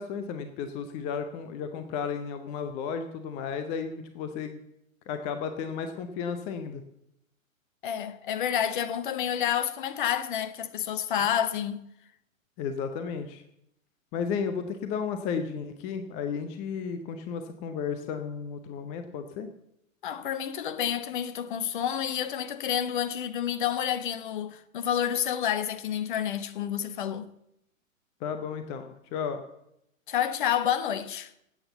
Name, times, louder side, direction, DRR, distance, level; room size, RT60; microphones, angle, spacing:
voice 1, 0.0-4.6 5.1-6.8 12.6-13.4 14.1-19.5 28.2-29.4, left 6 dB, 15° left, 0.7 m, -33 dB
voice 2, 7.8-11.8 20.0-27.3 30.1-31.3, left 9 dB, 35° left, 1.0 m, -29 dB
17.5 x 8.4 x 6.9 m
figure-of-eight pair, 115°, 41 cm